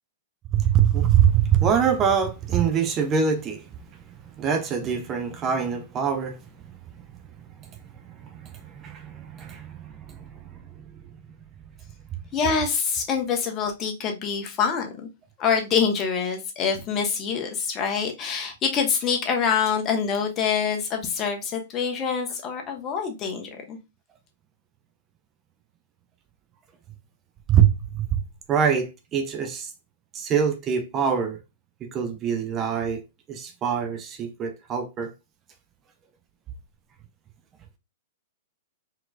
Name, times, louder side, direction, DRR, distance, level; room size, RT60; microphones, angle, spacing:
voice 1, 0.5-3.7 4.2-6.4 8.1-10.6 27.5-28.2 28.5-29.7 30.1-31.4 31.8-33.0 33.3-35.1, right 8 dB, 30° right, 0.7 m, -24 dB
voice 2, 12.3-15.1 15.4-23.8, left 6 dB, 30° left, 1.3 m, -25 dB
4.5 x 3.9 x 2.3 m
hypercardioid pair, 120°, 0 cm